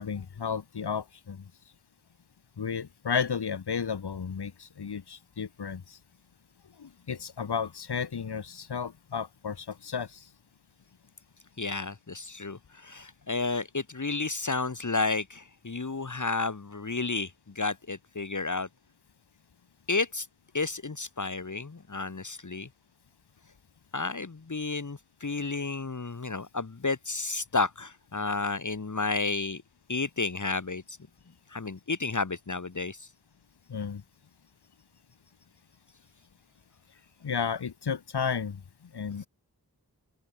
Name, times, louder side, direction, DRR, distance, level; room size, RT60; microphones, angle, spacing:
voice 1, 0.0-1.4 2.6-6.0 6.8-10.3 33.7-34.0 37.2-38.6 38.9-39.3, left 6 dB, 85° left, 1.0 m, -33 dB
voice 2, 11.6-18.7 19.9-20.3 20.5-22.7 23.9-29.6 29.9-31.0 31.5-33.1, left 3 dB, 50° left, 1.5 m, -31 dB
wide cardioid pair, 45°, 39 cm